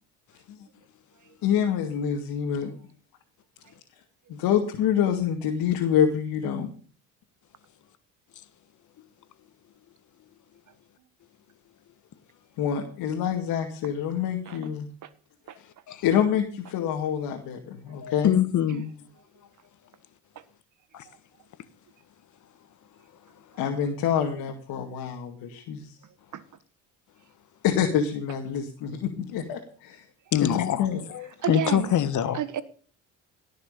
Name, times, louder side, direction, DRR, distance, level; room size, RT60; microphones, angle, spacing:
voice 1, 1.4-2.7 4.3-6.7 12.6-14.9 16.0-18.4 23.6-25.9 27.6-30.0 30.4-31.0, left 8 dB, 70° left, 2.4 m, -26 dB
voice 2, 18.0-18.9 20.9-21.0 30.3-32.4, left 10 dB, 55° left, 1.4 m, -25 dB
voice 3, 31.4-31.9 32.3-32.6, right 10 dB, 55° right, 1.5 m, -31 dB
17.5 x 6.6 x 6.8 m
supercardioid pair, 70°, 36 cm